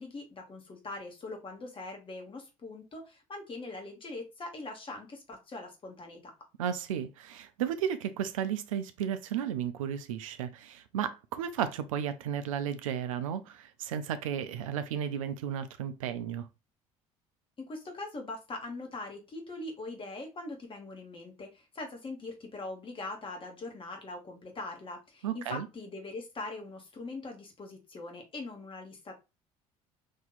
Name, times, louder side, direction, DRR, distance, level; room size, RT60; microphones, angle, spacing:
voice 1, 0.0-6.2 17.6-29.1, left 2 dB, 30° left, 1.1 m, -42 dB
voice 2, 6.6-16.5 25.2-25.7, right 9 dB, 70° right, 0.4 m, -34 dB
2.8 x 2.7 x 3.9 m
figure-of-eight pair, 60°, 18 cm